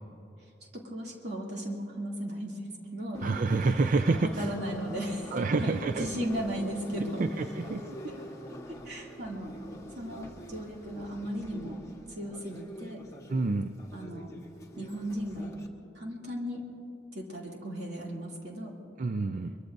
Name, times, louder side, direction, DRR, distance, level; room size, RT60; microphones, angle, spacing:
voice 1, 0.7-2.6 2.9-3.2 3.5-4.0 4.2-7.2 8.0-8.2 8.8-9.5 10.0-11.8 12.1-13.0 13.9-14.3 14.8-15.6 15.9-16.6 17.1-18.8, equal, 65° right, -2 dB, 2.7 m, -36 dB
Subway metro underground, 3.1-15.7, equal, 20° left, 1.3 m, -45 dB
voice 2, 3.2-4.5 5.3-6.1 7.2-7.9 13.3-13.7 19.0-19.5, right 3 dB, 45° right, 9 dB, 0.4 m, -28 dB
23.0 x 22.5 x 2.6 m, 2.7 s
head